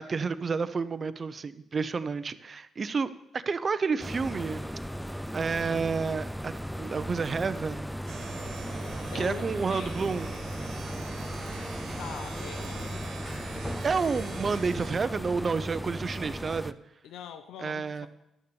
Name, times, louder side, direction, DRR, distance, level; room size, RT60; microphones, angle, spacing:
voice 1, 0.0-4.6 5.3-6.5 6.8-7.9 9.1-10.3 13.8-16.8 17.6-18.1, right 5 dB, 40° right, 13 dB, 0.7 m, -30 dB
sound 1, 4.0-16.7, equal, ahead, 0.4 m, -37 dB
sound 2, 8.1-15.0, right 5 dB, 75° right, 1.6 m, -42 dB
voice 2, 9.1-10.8 12.0-15.3 17.0-18.1, left 8 dB, 80° left, 9 dB, 0.8 m, -45 dB
12.0 x 6.8 x 7.0 m, 0.87 s
cardioid pair, 90°, 0 cm